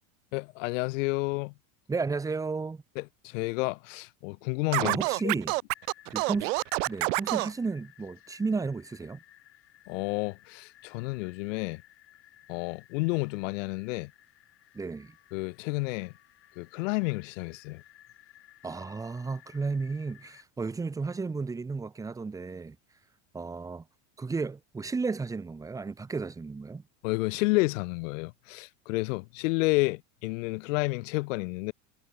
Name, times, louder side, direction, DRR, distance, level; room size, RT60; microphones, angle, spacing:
voice 1, 0.3-1.5 3.0-5.0 5.2-5.3 9.9-11.8 12.5-14.1 15.3-16.1 16.6-17.8 27.0-31.7, left 26 dB, 85° left, 0.5 m, -30 dB
voice 2, 1.9-2.8 4.8-5.5 6.1-6.5 6.8-9.2 14.7-15.1 18.6-22.8 23.3-23.8 24.2-26.8, right 4 dB, 10° right, 1.3 m, -33 dB
Scratching (performance technique), 4.7-7.5, right 24 dB, 80° right, 0.7 m, -28 dB
sound 1, 5.7-20.4, left 14 dB, 35° left, 7.5 m, -58 dB
cardioid pair, 165°, 38 cm